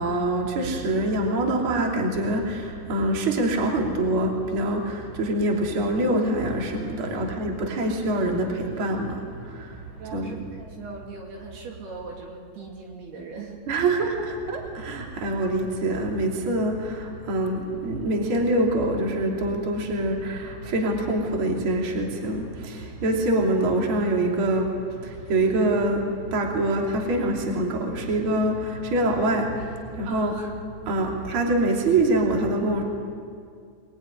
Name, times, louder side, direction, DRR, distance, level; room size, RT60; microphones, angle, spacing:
voice 1, 0.0-10.5 13.7-30.3 30.8-32.8, right 1 dB, 35° right, 0 dB, 3.2 m, -25 dB
voice 2, 7.0-7.3 10.0-13.8 30.1-30.5, right 4 dB, 65° right, -1 dB, 4.6 m, -39 dB
25.0 x 20.5 x 9.8 m, 2.2 s
omnidirectional pair, 4.8 m